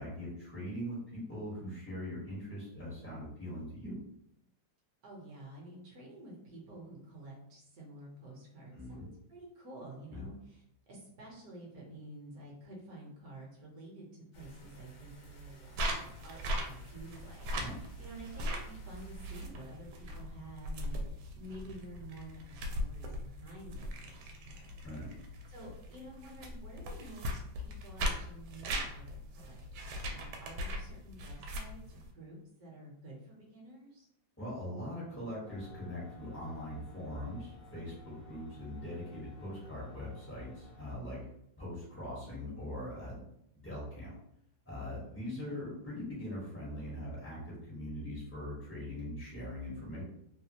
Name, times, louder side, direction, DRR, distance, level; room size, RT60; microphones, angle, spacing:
voice 1, 0.0-4.0 8.7-9.1 10.1-10.2 17.5-17.8 24.8-25.1 34.4-41.2 41.6-43.2 43.6-44.1 44.6-50.0, left 1 dB, 15° left, -7 dB, 0.4 m, -41 dB
voice 2, 5.0-17.5 18.0-24.6 25.5-29.6 29.9-34.1 45.2-45.6, right 1 dB, 60° right, -2 dB, 1.1 m, -50 dB
sound 1, 14.3-19.5, right 4 dB, 70° left, 1.3 m, -51 dB
sound 2, 15.8-32.1, equal, 85° right, 1.4 m, -40 dB
sound 3, 35.4-41.0, left 2 dB, 50° left, 0.7 m, -54 dB
3.2 x 2.3 x 2.8 m, 0.76 s
omnidirectional pair, 2.1 m